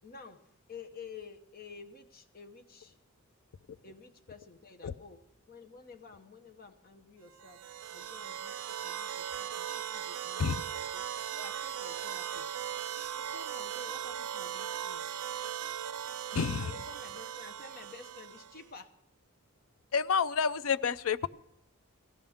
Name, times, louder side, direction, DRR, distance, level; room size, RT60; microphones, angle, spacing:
voice 1, 0.0-3.0 3.8-11.1 11.3-12.5 13.1-15.1 16.6-18.9, left 4 dB, 40° left, 6 dB, 1.0 m, -51 dB
sound 1, 7.4-18.6, right 9 dB, 90° right, 0.5 m, -38 dB
voice 2, 16.3-16.7 19.9-21.3, left 6 dB, 70° left, 14 dB, 0.4 m, -29 dB
17.5 x 15.0 x 3.6 m, 0.83 s
head